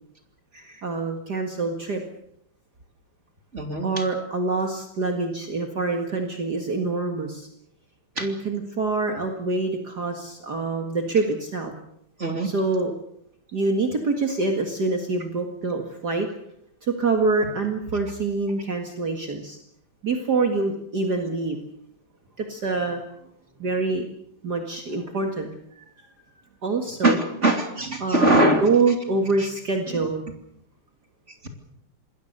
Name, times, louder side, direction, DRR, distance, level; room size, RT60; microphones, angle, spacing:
voice 1, 0.5-2.0 3.8-7.5 8.2-11.7 12.4-12.9 13.5-16.3 16.8-19.6 20.0-21.6 22.4-23.0 23.6-24.1 24.4-25.8 26.6-27.2 28.0-30.2, right 3 dB, 50° right, 4 dB, 2.4 m, -25 dB
voice 2, 3.5-3.9 8.2-8.3 12.2-12.5 27.0-28.6 29.4-29.5 29.9-30.0, right 1 dB, 30° right, 5 dB, 3.1 m, -21 dB
27.0 x 21.0 x 6.8 m, 0.74 s
omnidirectional pair, 2.4 m